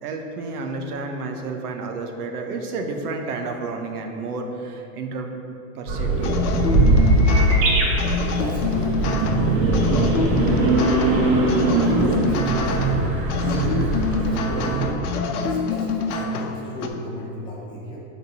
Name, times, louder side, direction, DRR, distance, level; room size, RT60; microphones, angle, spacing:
voice 1, 0.0-5.3 5.7-6.4 13.3-13.4, right 3 dB, 90° right, 3 dB, 1.1 m, -31 dB
sound 1, 5.9-14.9, right 2 dB, 60° right, 1.5 m, -20 dB
sound 2, 6.2-16.9, left 4 dB, 90° left, 0.8 m, -26 dB
voice 2, 8.4-9.6 11.8-13.0 13.4-15.1 15.3-18.0, left 1 dB, 10° left, -4 dB, 0.4 m, -34 dB
7.3 x 3.8 x 5.4 m, 2.7 s
supercardioid pair, 155°, 44 cm